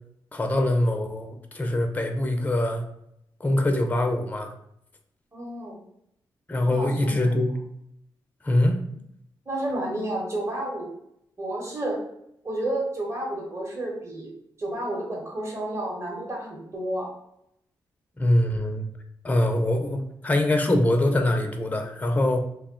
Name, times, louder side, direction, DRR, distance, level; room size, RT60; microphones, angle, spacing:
voice 1, 0.3-2.8 3.4-4.5 6.5-7.5 8.4-8.8 18.2-18.8 19.2-22.4, left 1 dB, 15° left, 5 dB, 0.4 m, -23 dB
voice 2, 5.3-5.8 6.7-7.1 9.5-10.9 11.4-12.0 12.4-14.3 14.6-17.1, right 1 dB, 30° right, -2 dB, 0.9 m, -31 dB
2.2 x 2.0 x 3.6 m, 0.77 s
cardioid pair, 65°, 9 cm